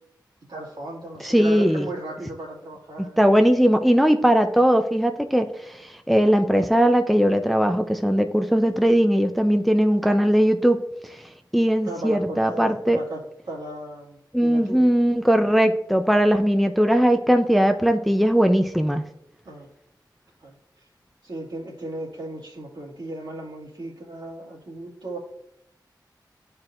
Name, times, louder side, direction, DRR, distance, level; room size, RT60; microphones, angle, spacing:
voice 1, 0.5-3.2 11.8-14.9 19.4-19.7 20.4-20.9 21.2-25.2, right 1 dB, 70° right, -5 dB, 2.2 m, -36 dB
voice 2, 1.2-1.9 3.2-10.8 11.5-13.0 14.3-19.0, equal, ahead, 6 dB, 0.5 m, -19 dB
11.5 x 4.5 x 2.5 m, 0.78 s
cardioid pair, 60°, 8 cm